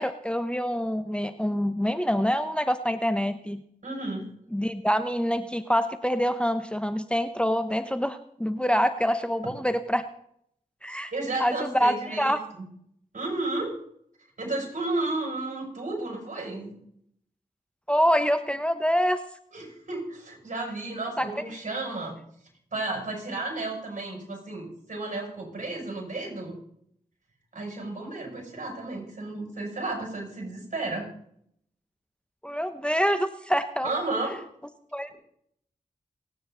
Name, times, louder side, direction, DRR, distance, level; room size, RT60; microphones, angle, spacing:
voice 1, 0.0-3.6 4.5-10.0 10.8-11.1 11.4-12.4 17.9-19.2 21.2-21.3 32.4-33.9 34.9-35.1, equal, 5° left, 10 dB, 1.0 m, -26 dB
voice 2, 3.8-4.3 9.4-9.5 11.1-12.6 13.1-13.8 14.4-16.8 19.5-22.2 22.7-26.6 27.5-31.1 33.8-34.4, right 2 dB, 55° right, 0 dB, 6.8 m, -33 dB
27.5 x 9.4 x 4.0 m, 0.69 s
cardioid pair, 40°, 16 cm